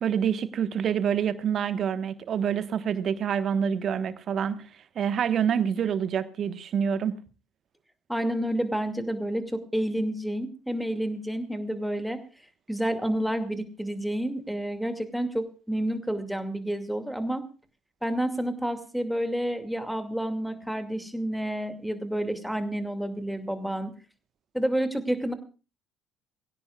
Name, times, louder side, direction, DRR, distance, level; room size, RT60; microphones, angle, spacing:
voice 1, 0.0-4.7 4.9-7.2, right 8 dB, 45° right, 1.3 m, -27 dB
voice 2, 8.1-12.2 12.7-17.4 18.0-23.9 24.5-25.3, right 1 dB, ahead, 2.4 m, -29 dB
22.5 x 16.5 x 2.4 m
figure-of-eight pair, 55°, 0 cm